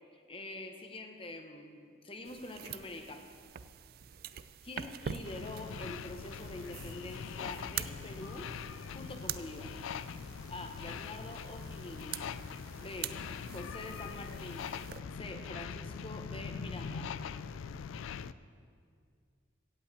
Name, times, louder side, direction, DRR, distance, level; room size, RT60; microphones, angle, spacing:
voice 1, 0.1-3.3 4.3-8.5 8.9-9.7 10.5-12.2 12.8-13.2 13.4-14.7 15.1-17.2, left 2 dB, 25° left, 5 dB, 0.9 m, -45 dB
sound 1, 2.2-15.0, right 8 dB, 50° right, 0.3 m, -46 dB
sound 2, 5.2-18.3, left 6 dB, 75° left, 0.3 m, -42 dB
16.5 x 5.7 x 8.2 m, 2.2 s
head